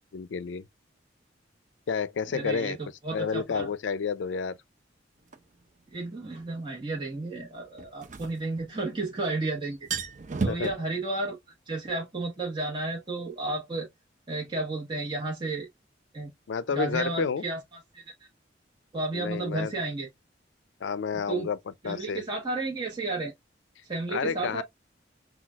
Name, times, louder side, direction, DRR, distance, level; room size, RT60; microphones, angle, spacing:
voice 1, 0.1-0.6 1.9-2.8 3.1-4.6 10.5-10.7 16.5-17.4 19.1-19.7 20.8-21.6 21.8-22.2 24.1-24.6, left 6 dB, 75° left, 0.4 m, -30 dB
voice 2, 2.3-2.8 3.0-3.7 5.9-9.8 10.4-11.4 11.7-13.9 14.3-15.7 16.1-16.3 16.7-17.6 17.9-18.0 18.9-20.1 21.3-21.5 21.8-23.3 23.9-24.6, right 2 dB, 25° right, 1.1 m, -32 dB
sound 1, 5.3-5.4 7.8-9.1 9.4-9.5 9.7-10.7, right 4 dB, 40° right, 0.5 m, -32 dB
5.9 x 2.3 x 2.3 m
head